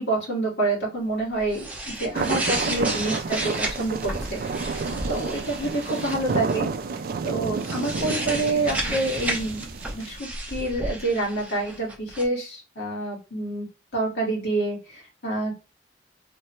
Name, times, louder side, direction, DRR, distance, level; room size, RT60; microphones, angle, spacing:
voice 1, 0.0-6.7 7.2-13.7 13.9-15.5, right 2 dB, 75° left, -3 dB, 1.8 m, -28 dB
Turning Pages, 1.3-6.6 7.5-12.3, right 1 dB, 10° right, 0.6 m, -32 dB
sound 1, 2.1-10.2, right 4 dB, 55° right, 0.3 m, -30 dB
3.1 x 2.2 x 2.9 m, 0.29 s
head